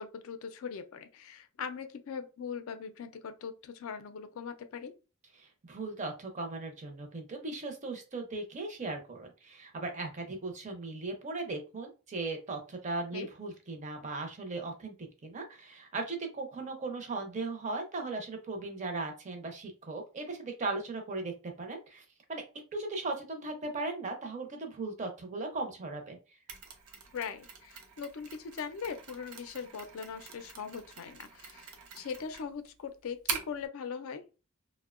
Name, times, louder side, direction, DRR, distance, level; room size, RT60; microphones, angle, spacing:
voice 1, 0.0-4.9 13.1-13.3 27.1-34.2, left 6 dB, 70° left, 0.4 m, -40 dB
voice 2, 5.4-22.4 22.7-26.2, right 3 dB, 35° right, 0.5 m, -38 dB
Mechanisms, 26.5-33.7, right 6 dB, 85° right, 0.6 m, -43 dB
2.6 x 2.1 x 2.4 m
head